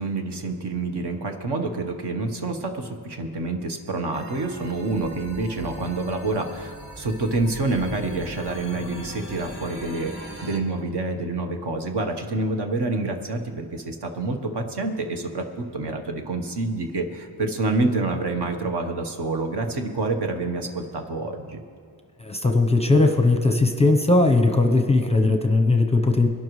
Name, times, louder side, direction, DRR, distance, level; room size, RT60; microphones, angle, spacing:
voice 1, 0.0-21.6, right 2 dB, 55° right, 4 dB, 1.3 m, -27 dB
sound 1, 4.1-10.6, equal, 25° right, 1.9 m, -40 dB
voice 2, 22.2-26.3, left 2 dB, 15° left, 4 dB, 0.7 m, -19 dB
22.5 x 11.5 x 3.2 m, 2.2 s
wide cardioid pair, 130°, 47 cm